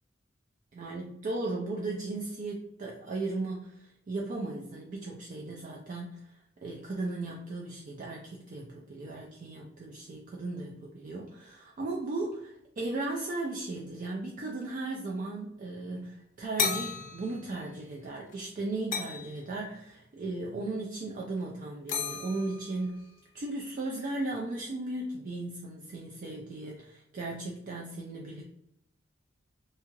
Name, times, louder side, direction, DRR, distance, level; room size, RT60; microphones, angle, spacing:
voice 1, 0.7-6.3 6.6-23.1 23.3-28.4, right 2 dB, 45° right, -1 dB, 0.4 m, -36 dB
sound 1, 16.6-17.8 18.1-18.4 18.9-19.4 21.2-21.4 21.9-23.1, left 6 dB, 40° left, 0.4 m, -34 dB
2.7 x 2.3 x 2.9 m, 0.79 s
head